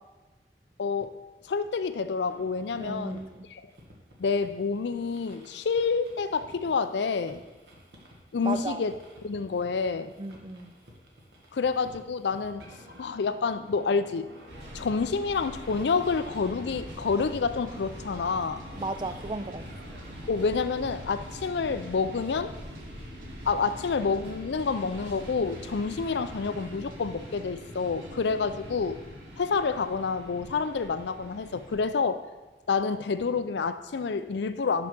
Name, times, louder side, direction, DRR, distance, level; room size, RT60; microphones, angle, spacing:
voice 1, 0.8-1.1 1.4-3.2 3.5-3.6 4.2-7.4 8.3-8.9 9.2-10.1 11.5-12.7 13.0-14.3 14.7-18.6 20.3-22.5 23.5-29.0 29.4-32.3 32.7-34.9, left 5 dB, 75° left, 12 dB, 0.4 m, -28 dB
sound 1, 2.3-21.3, equal, 70° right, 1.5 m, -52 dB
voice 2, 2.8-3.5 8.4-8.8 10.2-10.7 18.8-19.6, right 2 dB, 25° right, 10 dB, 0.3 m, -34 dB
sound 2, 14.5-31.8, equal, 90° right, 1.9 m, -43 dB
sound 3, 17.2-27.5, right 1 dB, 50° right, 0.8 m, -54 dB
6.0 x 5.6 x 6.1 m, 1.2 s
head